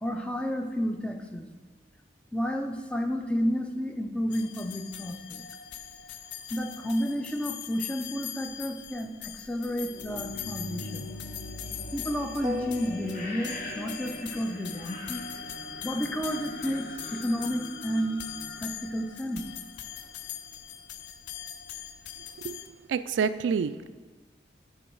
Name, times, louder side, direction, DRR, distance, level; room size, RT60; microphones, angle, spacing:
voice 1, 0.0-1.5 2.3-5.4 6.5-11.1 11.9-15.2 15.8-18.2 18.6-19.5, equal, 5° left, 5 dB, 0.4 m, -31 dB
sound 1, 4.3-22.7, left 10 dB, 75° left, 0.4 m, -41 dB
sound 2, 9.8-19.6, left 1 dB, 45° left, 1.5 m, -42 dB
sound 3, 12.4-14.4, left 2 dB, 20° right, 0.8 m, -38 dB
voice 2, 22.9-23.9, right 6 dB, 90° right, 13 dB, 0.3 m, -27 dB
10.0 x 3.9 x 4.6 m, 1.4 s
head